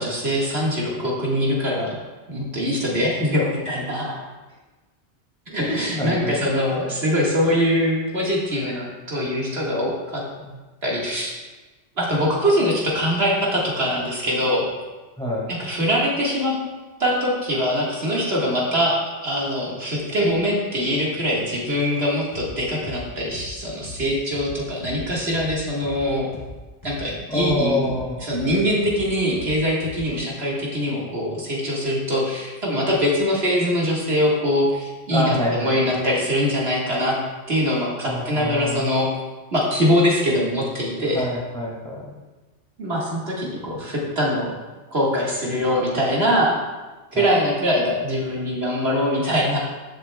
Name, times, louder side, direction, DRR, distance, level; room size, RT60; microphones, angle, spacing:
voice 1, 0.0-2.0 2.3-4.2 5.5-10.2 10.8-11.3 12.0-14.7 15.6-16.6 17.0-26.3 26.8-27.8 28.2-37.2 37.5-39.1 39.5-41.2 42.8-44.5 44.9-46.6 47.1-49.6, equal, 65° right, -5 dB, 2.0 m, -23 dB
voice 2, 5.6-6.4 10.4-10.5 15.2-15.5 27.3-28.2 35.1-36.0 38.0-38.9 41.1-42.1 47.1-47.3, left 1 dB, 5° left, -4 dB, 2.1 m, -26 dB
sound 1, 22.3-22.5 22.8-26.5 26.8-30.3, left 2 dB, 35° left, 2.1 m, -39 dB
13.0 x 7.9 x 2.3 m, 1.2 s
omnidirectional pair, 1.1 m